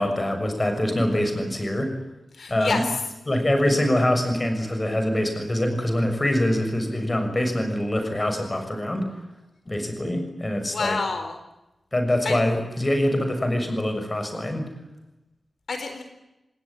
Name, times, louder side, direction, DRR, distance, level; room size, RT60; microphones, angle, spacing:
voice 1, 0.0-1.9 2.5-2.8 3.3-9.1 9.7-11.0 11.9-14.6, left 1 dB, 20° left, 6 dB, 6.5 m, -24 dB
voice 2, 2.3-3.0 10.7-11.4 12.2-12.4 15.7-16.0, left 4 dB, 65° left, 7 dB, 4.2 m, -28 dB
27.5 x 19.5 x 10.0 m, 0.98 s
wide cardioid pair, 145°, 0 cm